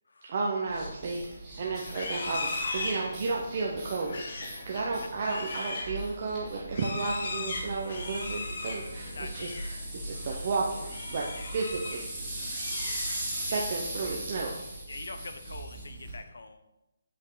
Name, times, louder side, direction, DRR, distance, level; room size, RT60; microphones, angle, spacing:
voice 1, 0.2-1.3 1.5-4.2 4.7-12.1 13.3-14.5, right 3 dB, 35° right, -2 dB, 0.9 m, -33 dB
sound 1, 0.7-16.2, right 1 dB, 10° right, 2.8 m, -39 dB
Livestock farm animals working animals, 1.8-9.8 10.1-10.4 10.8-12.1 12.4-13.5, left 3 dB, 50° left, 1.4 m, -38 dB
voice 2, 4.7-5.1 9.1-9.5 11.3-11.5 13.5-13.7 14.9-16.6, left 3 dB, 70° left, 8 dB, 0.9 m, -44 dB
8.7 x 5.4 x 4.0 m, 0.96 s
hypercardioid pair, 170°, 0 cm